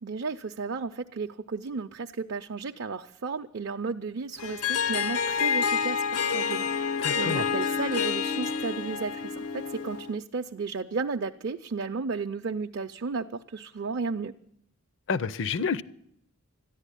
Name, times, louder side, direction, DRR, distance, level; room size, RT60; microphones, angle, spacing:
voice 1, 0.0-14.3, right 4 dB, 55° right, 0.5 m, -33 dB
Harp, 4.4-10.2, left 6 dB, 90° left, 0.8 m, -28 dB
voice 2, 7.0-7.5 15.1-15.8, left 5 dB, 55° left, 0.6 m, -29 dB
13.5 x 11.0 x 9.9 m
head